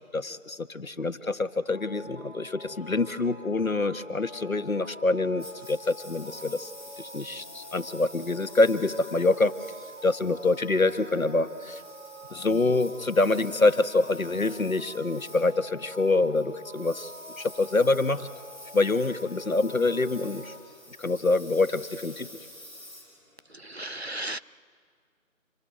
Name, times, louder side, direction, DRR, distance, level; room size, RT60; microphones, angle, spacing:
voice 1, 0.1-6.7 7.0-9.5 10.0-11.8 12.3-17.1 17.4-18.3 18.7-20.5 21.0-22.3, left 3 dB, 80° left, 11 dB, 1.4 m, -26 dB
sound 1, 1.7-20.6, right 1 dB, 75° right, 5.0 m, -46 dB
Engine, 5.4-23.8, equal, 20° right, 5.5 m, -49 dB
voice 2, 23.5-24.4, right 1 dB, 50° right, 15 dB, 0.6 m, -35 dB
27.5 x 22.5 x 9.3 m, 2.2 s
figure-of-eight pair, 180°, 41 cm